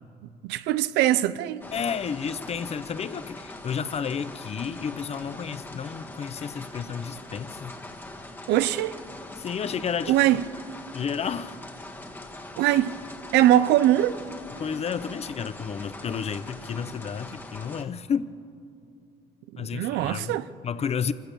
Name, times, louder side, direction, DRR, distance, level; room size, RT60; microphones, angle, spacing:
voice 1, 0.4-1.7 8.5-8.9 10.1-10.4 12.6-12.9 13.3-14.2 19.5-20.5, right 13 dB, 90° right, 0.7 m, -22 dB
sound 1, 1.6-17.8, left 2 dB, 10° left, 1.6 m, -42 dB
voice 2, 1.7-7.7 9.4-10.2 10.9-11.6 14.6-18.3 19.6-20.4 20.6-21.1, left 7 dB, 40° left, 0.8 m, -31 dB
26.0 x 16.0 x 6.8 m
cardioid pair, 110°, 17 cm